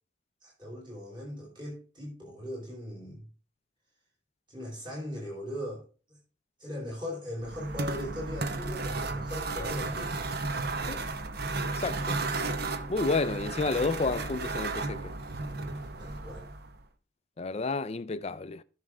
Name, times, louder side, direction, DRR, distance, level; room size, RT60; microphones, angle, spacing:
voice 1, 0.4-3.3 4.5-6.2 6.6-10.3 16.0-16.5, left 1 dB, 25° right, 4.6 m, -39 dB
sound 1, 7.4-16.8, right 3 dB, 50° right, 0.8 m, -34 dB
voice 2, 11.6-12.2 12.9-15.1 17.4-18.6, left 3 dB, 30° left, 0.4 m, -31 dB
12.5 x 6.5 x 3.6 m
head